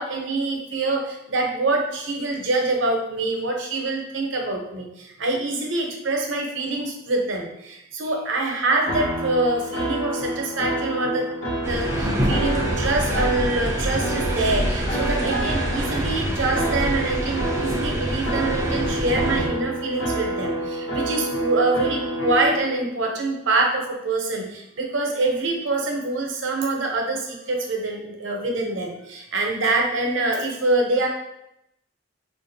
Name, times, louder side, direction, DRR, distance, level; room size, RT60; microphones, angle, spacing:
voice 1, 0.0-11.3 11.7-31.1, right 2 dB, 80° right, 1 dB, 0.7 m, -25 dB
sound 1, 8.9-22.6, right 1 dB, 70° left, 1.1 m, -29 dB
sound 2, 11.6-19.5, equal, 15° right, 0.5 m, -26 dB
4.3 x 2.5 x 2.6 m, 0.82 s
head